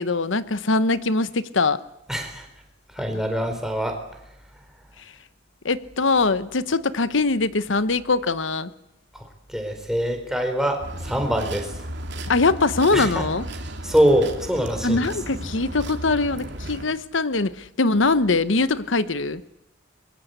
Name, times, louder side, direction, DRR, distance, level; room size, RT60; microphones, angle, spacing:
voice 1, 0.0-1.8 5.6-8.7 12.2-13.4 14.8-19.4, left 3 dB, 75° left, 14 dB, 1.0 m, -22 dB
voice 2, 2.1-2.5 2.9-4.0 9.1-11.7 12.9-13.2 13.8-15.1, equal, 5° right, 4 dB, 4.3 m, -24 dB
sound 1, 10.8-16.8, right 1 dB, 60° right, 3.1 m, -34 dB
25.5 x 22.5 x 8.2 m, 0.85 s
head